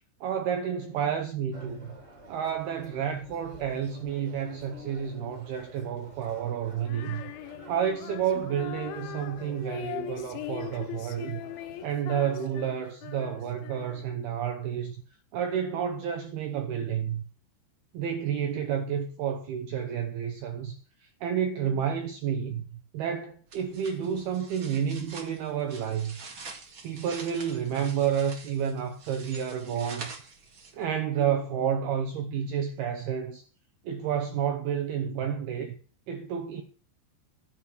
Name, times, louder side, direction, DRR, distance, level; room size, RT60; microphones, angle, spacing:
voice 1, 0.2-2.0 2.3-7.2 7.7-11.4 11.8-15.0 15.3-17.2 17.9-26.2 26.8-30.1 30.7-33.4 33.8-35.8 36.1-36.6, right 8 dB, 75° right, 2.5 m, -30 dB
sound 1, 1.5-11.9, right 1 dB, 20° right, 2.5 m, -50 dB
Female singing, 6.9-14.2, left 14 dB, 75° left, 3.0 m, -41 dB
sound 2, 23.5-30.9, right 4 dB, 50° right, 1.5 m, -46 dB
11.5 x 9.5 x 6.6 m
omnidirectional pair, 5.7 m